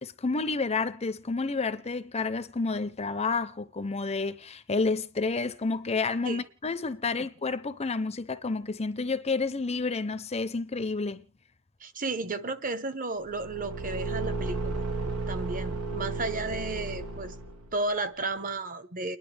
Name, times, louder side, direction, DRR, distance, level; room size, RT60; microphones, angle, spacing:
voice 1, 0.0-11.2, left 3 dB, 30° left, 0.7 m, -30 dB
voice 2, 11.8-14.8 15.3-17.3 17.7-19.2, right 2 dB, 40° right, 1.2 m, -33 dB
Car / Engine, 13.3-17.8, right 3 dB, 85° right, 1.6 m, -33 dB
30.0 x 11.0 x 3.4 m
head